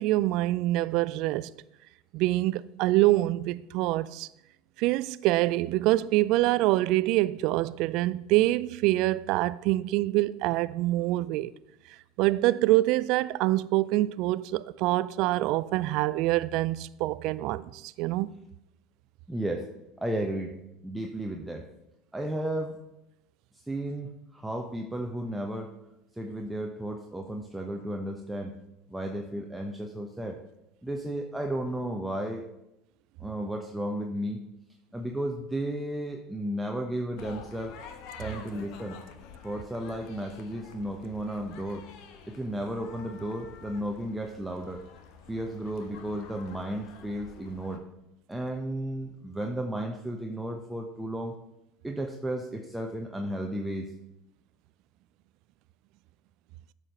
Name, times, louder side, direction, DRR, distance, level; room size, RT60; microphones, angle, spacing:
voice 1, 0.0-1.5 2.1-4.3 4.8-11.5 12.2-18.3, right 17 dB, 55° right, 0.4 m, -25 dB
voice 2, 19.3-19.7 20.0-20.6 20.8-21.7 22.1-22.8 23.5-25.7 26.2-28.6 28.9-30.4 30.8-32.5 33.2-34.4 34.9-37.8 38.2-39.0 39.4-41.9 42.3-44.8 45.3-47.8 48.3-51.3 51.8-53.9, right 1 dB, 5° right, 1.0 m, -33 dB
sound 1, 37.2-47.8, left 6 dB, 55° left, 1.2 m, -48 dB
13.0 x 5.0 x 5.6 m
figure-of-eight pair, 75°, 0 cm